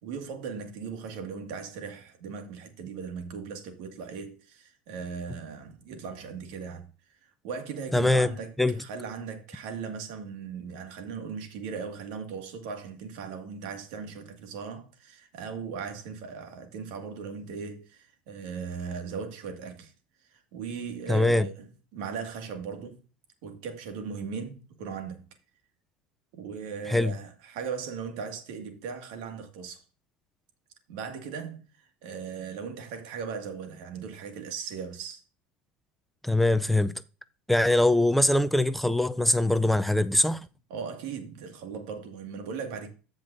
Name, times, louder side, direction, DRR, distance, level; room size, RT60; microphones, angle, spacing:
voice 1, 0.0-6.9 7.2-19.9 20.3-23.0 23.4-25.3 26.4-29.8 30.9-35.2 40.7-42.9, right 6 dB, 75° right, 1.9 m, -38 dB
voice 2, 7.9-8.3 8.6-8.8 21.1-21.5 26.9-27.1 36.2-36.9 37.5-40.5, left 1 dB, 5° left, 0.5 m, -22 dB
14.5 x 5.2 x 2.6 m
supercardioid pair, 110°, 4 cm